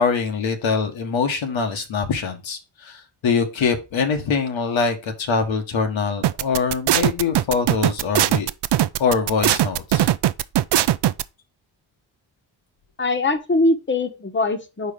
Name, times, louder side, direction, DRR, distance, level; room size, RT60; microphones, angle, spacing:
voice 1, 0.0-8.5 9.0-10.1, left 5 dB, 75° left, 1.4 m, -23 dB
sound 1, 6.2-11.2, right 12 dB, 60° right, 0.5 m, -19 dB
voice 2, 13.0-14.9, left 2 dB, 25° left, 1.1 m, -21 dB
4.7 x 4.3 x 5.1 m
cardioid pair, 55°, 47 cm